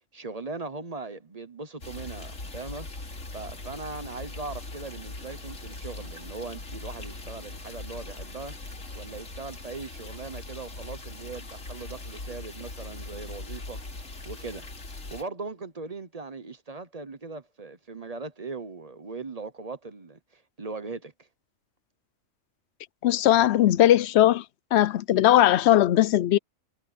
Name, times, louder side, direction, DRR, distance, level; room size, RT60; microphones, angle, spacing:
voice 1, 0.1-2.9 3.3-8.6 8.9-13.8 14.2-14.7 15.1-21.3, right 3 dB, 30° right, 1.0 m, -39 dB
sound 1, 1.8-15.2, left 2 dB, 85° left, 3.4 m, -40 dB
voice 2, 23.0-24.4 24.7-26.4, left 13 dB, 65° left, 0.8 m, -19 dB
omnidirectional pair, 1.3 m